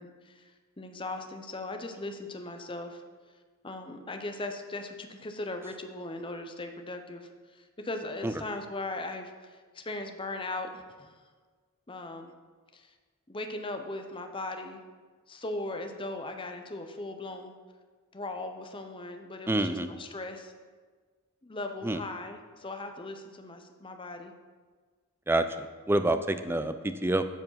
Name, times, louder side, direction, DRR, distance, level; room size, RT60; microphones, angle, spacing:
voice 1, 0.0-3.0 3.6-11.2 11.9-12.3 12.7-12.9 13.3-14.8 15.3-17.5 18.1-20.5 21.4-24.3 26.4-26.6, left 2 dB, 25° left, 5 dB, 0.7 m, -39 dB
voice 2, 19.5-19.9 21.8-22.0 25.3-27.2, right 1 dB, 10° right, 10 dB, 0.4 m, -27 dB
12.5 x 4.9 x 5.7 m, 1.5 s
head